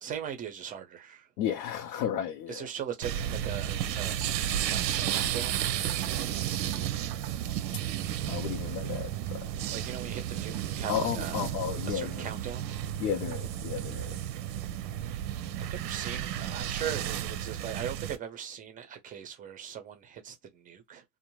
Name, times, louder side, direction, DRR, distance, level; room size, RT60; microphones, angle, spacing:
voice 1, 0.0-1.3 2.5-4.2 4.6-5.6 6.6-7.0 9.7-11.3 11.9-12.6 15.6-21.0, right 8 dB, 15° right, 0.5 m, -39 dB
voice 2, 1.4-2.7 8.3-9.5 10.9-12.3 13.0-14.3, left 9 dB, 85° left, 0.6 m, -33 dB
sound 1, 3.0-18.2, right 11 dB, 85° right, 0.7 m, -33 dB
2.5 x 2.1 x 3.0 m
supercardioid pair, 125°, 49 cm